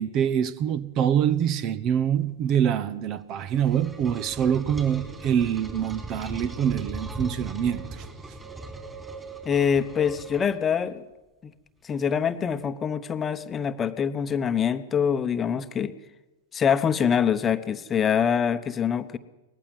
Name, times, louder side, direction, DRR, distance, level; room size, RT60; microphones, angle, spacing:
voice 1, 0.0-8.0, right 9 dB, 40° right, 1.0 m, -25 dB
sound 1, 3.1-10.9, right 3 dB, 15° right, 4.2 m, -38 dB
voice 2, 9.4-11.0 11.4-11.5 11.8-15.9 16.5-19.2, left 7 dB, 25° left, 1.0 m, -25 dB
19.5 x 15.0 x 9.5 m
hypercardioid pair, 95°, 0 cm